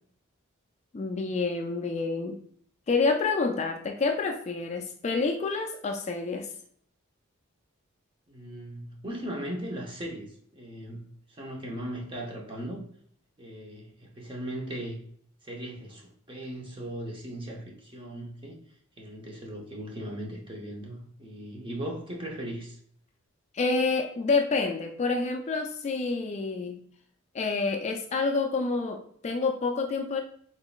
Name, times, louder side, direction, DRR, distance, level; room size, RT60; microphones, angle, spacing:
voice 1, 0.9-2.4 2.9-6.5 23.5-26.8 27.3-30.2, left 4 dB, 35° left, 4 dB, 0.3 m, -28 dB
voice 2, 8.3-12.8 13.4-15.0 15.4-18.6 19.0-22.8, right 1 dB, 25° right, 0 dB, 0.8 m, -38 dB
4.0 x 3.7 x 2.3 m, 0.62 s
head